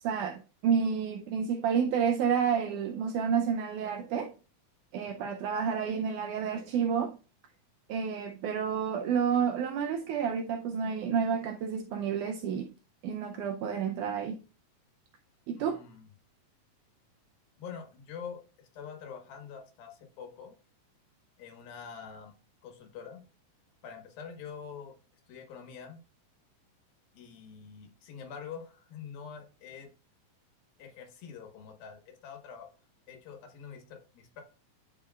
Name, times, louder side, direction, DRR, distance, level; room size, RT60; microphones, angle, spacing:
voice 1, 0.0-4.3 4.9-7.2 7.9-12.7 13.0-14.4 15.5-15.8, right 7 dB, 80° right, 1.8 m, -30 dB
voice 2, 15.6-16.1 17.6-20.5 21.4-22.3 22.6-23.3 23.8-24.9 25.3-26.0 27.1-29.9 30.8-32.7 33.1-34.4, left 6 dB, 85° left, 3.2 m, -45 dB
11.5 x 4.9 x 2.3 m
omnidirectional pair, 4.1 m